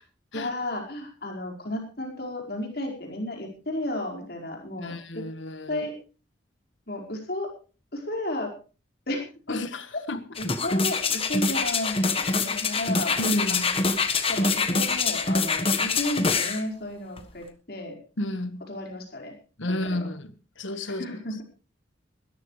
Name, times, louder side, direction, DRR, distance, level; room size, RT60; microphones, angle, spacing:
voice 1, 0.3-5.2 5.7-5.9 6.9-7.5 7.9-8.5 9.1-9.6 9.9-10.0 10.4-13.2 13.5-13.6 14.3-18.0 18.7-19.3 19.7-20.1 20.9-21.4, left 1 dB, 55° left, 5.0 m, -33 dB
voice 2, 4.8-5.8 9.5-10.2 13.2-13.7 18.2-18.6 19.6-21.0, left 1 dB, 80° left, 1.6 m, -31 dB
sound 1, 10.4-16.6 17.2-17.3, left 4 dB, 30° left, 1.3 m, -25 dB
21.0 x 14.0 x 3.3 m
head